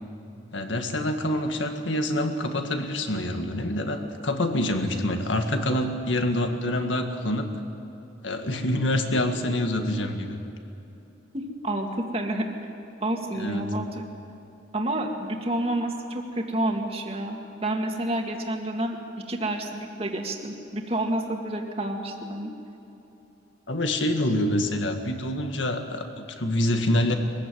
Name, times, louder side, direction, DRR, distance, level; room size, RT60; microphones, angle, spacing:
voice 1, 0.5-7.5 8.2-10.4 13.3-13.7 23.7-27.1, left 1 dB, 85° left, 5 dB, 1.9 m, -26 dB
voice 2, 11.3-12.5 13.0-14.1 14.7-19.0 19.3-22.5, right 1 dB, 30° right, 2 dB, 2.1 m, -29 dB
23.0 x 15.0 x 9.4 m, 2.9 s
head